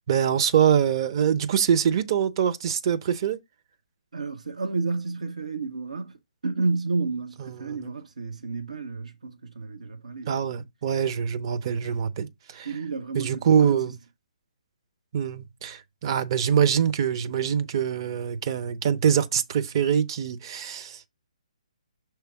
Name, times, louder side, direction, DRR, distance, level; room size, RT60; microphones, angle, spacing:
voice 1, 0.0-3.4 7.6-7.8 10.3-12.7 13.1-14.0 15.1-21.1, right 8 dB, 40° right, 0.8 m, -24 dB
voice 2, 4.1-6.2 6.4-10.5 12.6-13.7, right 3 dB, 75° right, 1.0 m, -31 dB
6.7 x 3.3 x 4.7 m
figure-of-eight pair, 140°, 4 cm